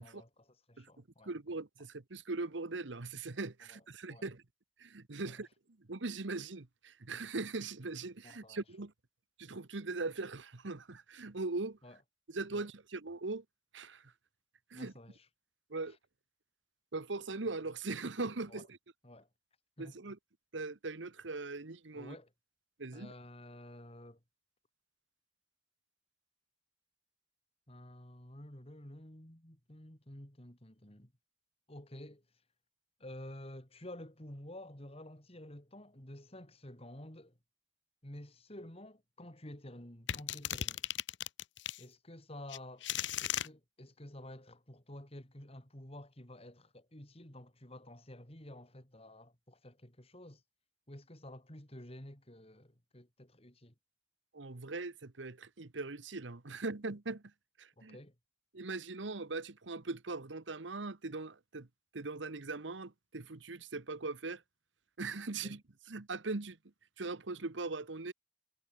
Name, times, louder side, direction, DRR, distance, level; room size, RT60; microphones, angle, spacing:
voice 1, 0.0-1.3 3.7-3.8 4.1-4.3 5.2-5.4 8.2-8.6 11.8-12.0 12.5-12.7 14.7-15.3 15.9-16.0 18.5-18.6 19.0-19.3 19.8-20.0 22.0-22.3 22.9-24.2 27.7-31.1 31.7-32.2 33.0-37.4 38.0-40.9 41.8-42.9 43.2-50.4 50.9-53.7 57.8-58.2 65.4-65.6, left 1 dB, 30° left, 3.8 m, -51 dB
voice 2, 1.2-4.4 4.8-5.5 5.8-8.9 9.4-11.8 12.3-13.4 13.7-14.1 14.7-14.9 15.7-16.0 16.9-18.8 19.8-20.2 20.5-22.1 22.8-23.1 54.3-57.2 57.6-58.0 58.5-61.7 61.9-64.4 65.0-65.6 65.9-66.6 67.0-68.1, right 3 dB, 75° right, 1.2 m, -40 dB
sound 1, 40.1-41.8 42.5-43.5, left 11 dB, 70° left, 0.8 m, -36 dB
head